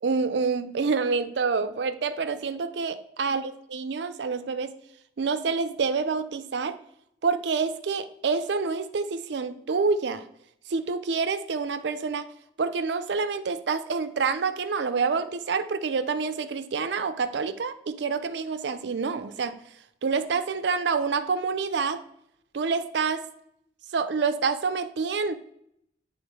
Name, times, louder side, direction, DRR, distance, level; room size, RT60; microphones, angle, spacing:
voice 1, 0.0-4.7 5.2-6.8 7.2-10.2 10.7-12.3 12.6-19.6 20.0-22.0 22.5-23.2 23.9-25.3, right 5 dB, 65° right, 11 dB, 0.5 m, -27 dB
8.1 x 3.5 x 3.6 m, 0.75 s
head